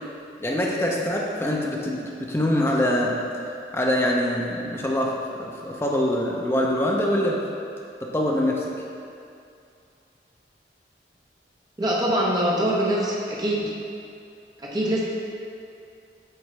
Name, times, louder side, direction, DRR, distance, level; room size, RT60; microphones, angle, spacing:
voice 1, 0.4-3.2 3.7-7.4 8.0-8.6, left 1 dB, 15° left, -2 dB, 0.5 m, -24 dB
voice 2, 11.8-13.6 14.6-15.0, right 1 dB, 25° right, -5 dB, 0.8 m, -23 dB
7.9 x 3.8 x 3.2 m, 2.5 s
head